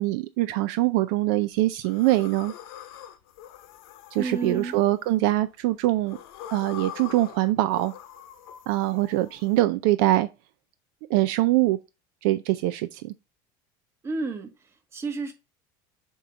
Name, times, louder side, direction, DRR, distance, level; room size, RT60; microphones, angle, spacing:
voice 1, 0.0-2.5 4.1-6.2 6.5-7.9 8.7-10.3 11.1-11.8 12.2-13.1, right 16 dB, 70° right, 0.4 m, -23 dB
sound 1, 1.8-5.4 5.9-9.6, left 11 dB, 80° left, 1.1 m, -44 dB
voice 2, 4.2-4.8 14.0-15.3, right 3 dB, 25° right, 1.2 m, -31 dB
7.2 x 2.9 x 5.1 m
cardioid pair, 150°, 12 cm